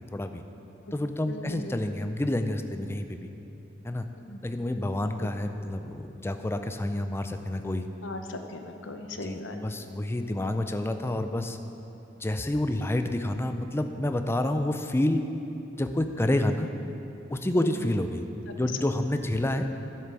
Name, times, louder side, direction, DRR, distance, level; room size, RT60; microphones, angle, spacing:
voice 1, 0.1-0.4 0.9-3.3 3.8-4.1 4.4-7.9 9.1-11.6 12.2-15.2 15.8-16.7 17.3-18.3 18.5-19.7, left 1 dB, 15° left, 8 dB, 0.4 m, -28 dB
voice 2, 1.3-1.7 4.2-4.4 8.0-9.6 17.6-17.7 18.5-18.6, left 2 dB, 80° left, 6 dB, 0.8 m, -38 dB
10.0 x 7.6 x 6.0 m, 2.9 s
head